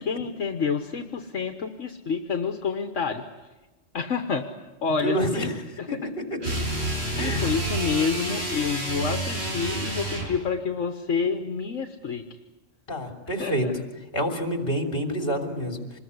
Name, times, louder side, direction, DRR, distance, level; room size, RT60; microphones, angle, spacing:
voice 1, 0.0-3.2 3.9-4.5 4.8-5.5 5.8-6.1 7.1-12.3 13.4-13.7, left 5 dB, 70° left, 6 dB, 1.6 m, -28 dB
voice 2, 5.0-5.6 5.9-6.5 7.2-7.6 12.9-13.7 14.1-16.0, equal, 45° left, 4 dB, 3.4 m, -28 dB
sound 1, 6.4-10.4, right 1 dB, 55° right, 5.9 m, -29 dB
26.0 x 21.0 x 9.6 m, 1.1 s
omnidirectional pair, 1.3 m